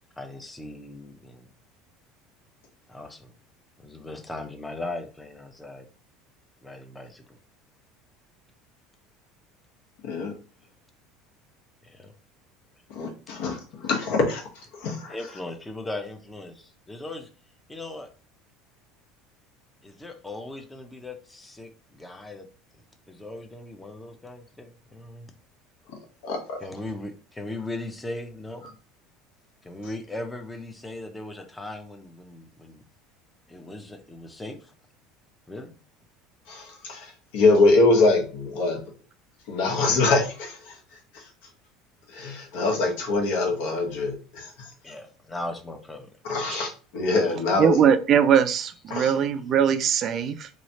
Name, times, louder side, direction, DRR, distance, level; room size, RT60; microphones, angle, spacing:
voice 1, 0.2-1.5 2.9-3.3 3.8-5.9 6.6-7.4 11.8-12.1 15.1-17.3 17.7-18.1 19.8-22.5 23.1-25.3 26.6-28.7 29.6-32.8 33.5-34.7 35.5-35.7 44.8-46.1, left 2 dB, 10° left, 0.5 m, -38 dB
voice 2, 10.0-10.3 12.9-15.1 25.9-26.6 36.5-38.8 39.5-41.3 42.1-44.7 46.2-47.8 48.9-49.1, left 3 dB, 80° left, 1.3 m, -24 dB
voice 3, 47.6-50.5, right 8 dB, 40° right, 0.4 m, -21 dB
3.1 x 2.4 x 4.0 m
cardioid pair, 135°, 0 cm